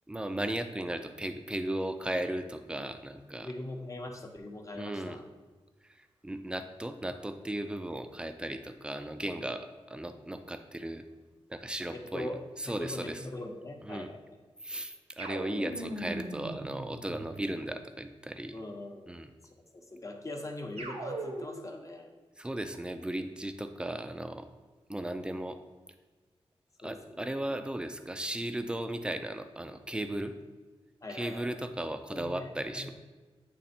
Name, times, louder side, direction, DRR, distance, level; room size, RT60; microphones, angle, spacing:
voice 1, 0.1-3.5 4.7-5.2 6.2-11.0 11.5-12.3 12.6-13.2 13.8-14.1 14.6-18.5 19.1-19.3 22.4-24.5 24.9-25.6 26.8-30.3 31.1-32.9, right 1 dB, 10° right, 8 dB, 0.4 m, -36 dB
voice 2, 3.4-5.2 11.8-12.4 12.6-14.4 18.5-19.1 19.7-22.1 26.8-27.3 31.0-31.5 32.1-32.9, left 1 dB, 30° left, 3 dB, 0.8 m, -41 dB
sound 1, 15.2-17.7 20.8-21.8, right 1 dB, 85° right, 1.0 m, -39 dB
8.5 x 3.3 x 4.2 m, 1.3 s
wide cardioid pair, 105°, 10 cm